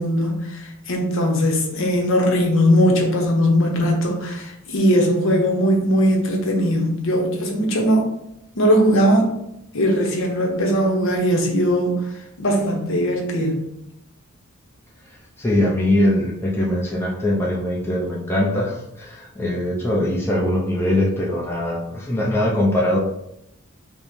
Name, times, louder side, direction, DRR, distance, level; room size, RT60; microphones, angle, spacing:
voice 1, 0.0-8.1 8.6-9.3 9.7-12.0 12.4-13.6, equal, 60° left, 1 dB, 0.8 m, -19 dB
voice 2, 15.4-23.0, left 1 dB, 10° left, -4 dB, 0.5 m, -21 dB
5.3 x 2.1 x 3.1 m, 0.81 s
head